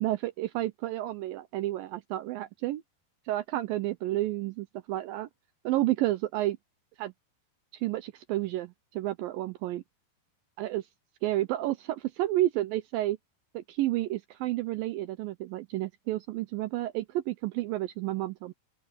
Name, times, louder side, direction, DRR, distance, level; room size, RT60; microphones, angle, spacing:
voice 1, 0.0-2.8 3.3-5.3 5.6-6.6 7.0-7.1 7.7-9.8 10.6-10.9 11.2-13.2 13.5-18.5, right 15 dB, 85° right, 2.0 m, -31 dB
open air
omnidirectional pair, 4.8 m